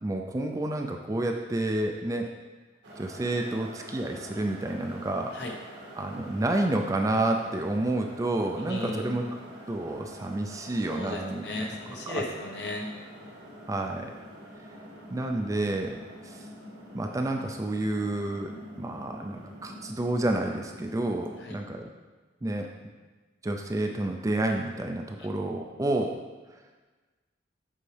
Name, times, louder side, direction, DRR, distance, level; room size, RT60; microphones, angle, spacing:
voice 1, 0.0-2.3 3.0-5.3 6.0-9.2 9.7-11.7 12.1-12.2 13.7-14.1 15.1-16.0 16.2-16.4 16.9-21.9 22.4-22.7 23.4-26.2, right 2 dB, 20° right, 3 dB, 0.4 m, -29 dB
sound 1, 2.8-21.4, equal, 75° right, 1.9 m, -46 dB
voice 2, 8.6-9.1 10.9-12.9 21.4-21.6 25.2-25.3, left 2 dB, 60° left, 0 dB, 1.0 m, -35 dB
7.6 x 4.6 x 3.3 m, 1.3 s
head